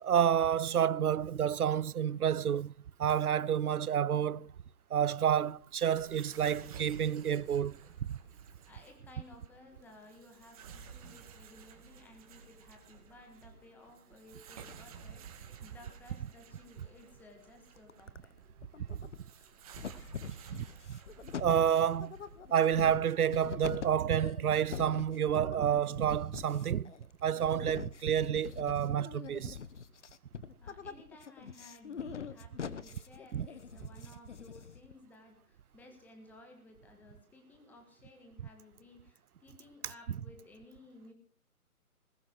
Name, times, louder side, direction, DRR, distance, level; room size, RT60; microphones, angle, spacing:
voice 1, 0.0-2.7 3.0-4.5 4.9-8.2 20.5-21.0 21.4-22.2 22.5-26.9 27.2-29.6 33.3-33.5, right 9 dB, 80° right, 0.7 m, -29 dB
sound 1, 5.4-23.5, right 6 dB, 25° right, 2.2 m, -54 dB
voice 2, 8.4-18.3 30.6-41.1, left 2 dB, 5° left, 1.6 m, -57 dB
sound 2, 17.8-18.3 18.6-19.4 19.8-34.9, left 6 dB, 55° left, 1.3 m, -44 dB
20.5 x 13.0 x 4.6 m
hypercardioid pair, 160°, 44 cm